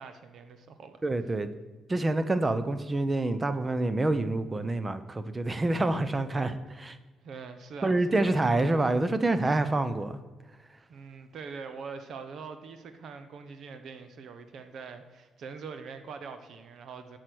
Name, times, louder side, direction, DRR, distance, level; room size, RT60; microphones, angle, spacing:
voice 1, 0.0-1.0 7.2-8.3 10.9-17.2, right 5 dB, 65° right, 9 dB, 0.8 m, -43 dB
voice 2, 1.0-1.5 1.9-7.0 7.8-10.2, right 2 dB, 25° right, 11 dB, 0.7 m, -27 dB
8.0 x 6.4 x 6.1 m, 1.3 s
cardioid pair, 90°, 0 cm